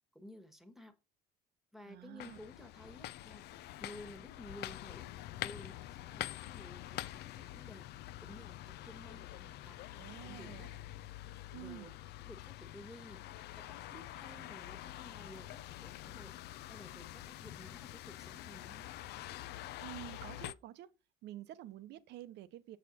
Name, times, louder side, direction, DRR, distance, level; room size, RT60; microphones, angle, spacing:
voice 1, 0.1-0.9 1.7-3.5 3.8-7.9 8.2-9.8 10.2-10.7 11.5-11.9 12.3-13.2 13.6-16.3 16.6-18.9, left 1 dB, ahead, 1.4 m, -54 dB
voice 2, 1.9-2.4 10.0-10.8 11.5-12.0 19.8-20.9 21.2-22.8, right 14 dB, 65° right, 0.8 m, -49 dB
sound 1, 2.2-20.5, left 15 dB, 60° left, 0.5 m, -46 dB
7.3 x 6.5 x 4.1 m
cardioid pair, 120°, 19 cm